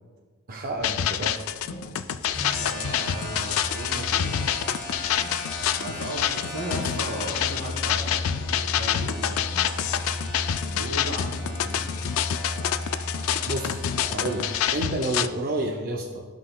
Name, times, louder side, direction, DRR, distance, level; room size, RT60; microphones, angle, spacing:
voice 1, 0.5-1.4 13.4-16.2, right 1 dB, 40° right, 1 dB, 0.5 m, -30 dB
sound 1, 0.8-15.3, left 10 dB, 75° left, 0.3 m, -27 dB
sound 2, 1.2-12.0 12.3-13.5, equal, 20° left, 1.1 m, -47 dB
sound 3, 2.3-14.7, left 1 dB, 40° left, 1.5 m, -34 dB
voice 2, 2.6-4.4 5.8-9.9 10.7-12.0, right 1 dB, 85° right, -3 dB, 2.2 m, -36 dB
13.5 x 5.7 x 2.3 m, 1.4 s
head